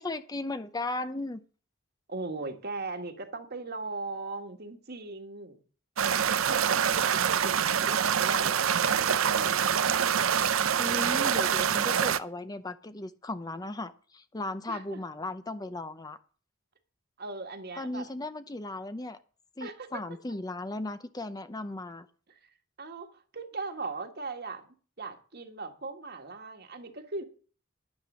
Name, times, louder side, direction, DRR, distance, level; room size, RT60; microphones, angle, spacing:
voice 1, 0.0-1.4 10.8-16.2 17.8-19.2 19.6-22.1, left 2 dB, 20° left, 0.6 m, -36 dB
voice 2, 2.1-5.6 6.5-9.7 14.7-15.0 17.2-18.1 19.6-19.9 22.8-27.2, right 3 dB, 50° right, 1.7 m, -39 dB
sound 1, 6.0-12.2, right 8 dB, 90° right, 0.6 m, -25 dB
11.0 x 9.6 x 6.2 m
head